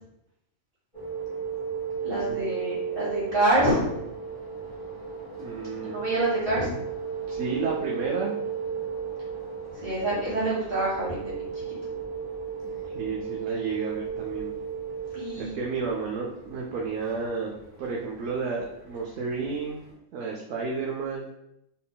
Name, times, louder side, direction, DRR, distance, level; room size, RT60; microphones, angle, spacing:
sound 1, 0.9-19.8, right 6 dB, 25° right, 1.6 m, -35 dB
voice 1, 2.0-3.9 5.8-6.8 9.7-11.6 15.1-15.6, right 1 dB, 40° right, -9 dB, 1.7 m, -27 dB
voice 2, 5.4-6.0 7.3-8.4 12.6-14.5 15.4-19.8 20.1-21.3, right 4 dB, 70° right, -2 dB, 0.9 m, -32 dB
4.0 x 3.5 x 2.3 m, 0.82 s
omnidirectional pair, 1.5 m